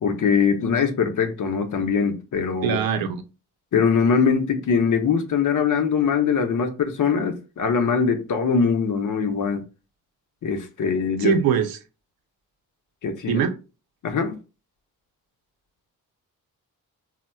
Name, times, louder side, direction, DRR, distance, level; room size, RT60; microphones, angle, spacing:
voice 1, 0.0-2.8 3.7-9.6 10.4-11.3 13.0-13.4 14.0-14.4, left 6 dB, 55° left, 0.7 m, -22 dB
voice 2, 2.6-3.2 11.2-11.8 13.3-13.6, right 7 dB, 75° right, 0.6 m, -22 dB
4.0 x 2.1 x 2.2 m
supercardioid pair, 55°, 36 cm